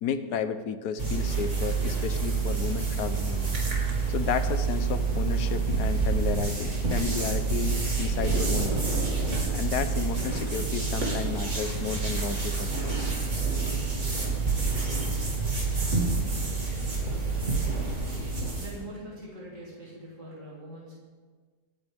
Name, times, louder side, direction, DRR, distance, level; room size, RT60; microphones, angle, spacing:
voice 1, 0.0-3.6 4.1-9.1 9.5-13.0, left 7 dB, 70° left, 10 dB, 1.4 m, -32 dB
sound 1, 1.0-18.8, right 4 dB, 45° right, 2.9 m, -28 dB
voice 2, 18.4-20.9, equal, 80° right, -6 dB, 3.7 m, -43 dB
27.0 x 9.6 x 3.5 m, 1.5 s
omnidirectional pair, 1.8 m